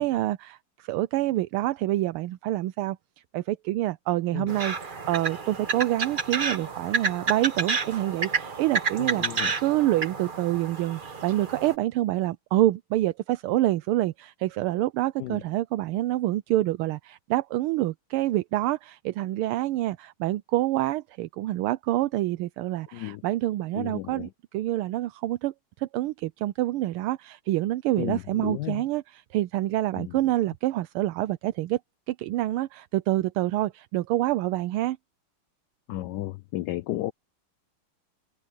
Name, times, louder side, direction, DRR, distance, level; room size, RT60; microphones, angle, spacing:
voice 1, 0.0-3.0 3.3-31.8 32.1-35.0, right 15 dB, 80° right, 1.5 m, -27 dB
sound 1, 4.5-11.7, right 4 dB, 30° right, 1.1 m, -30 dB
voice 2, 9.0-9.5 15.2-15.4 22.9-23.2 23.7-24.3 28.0-28.8 30.0-30.2 35.9-37.1, left 15 dB, 80° left, 0.9 m, -33 dB
omnidirectional pair, 2.4 m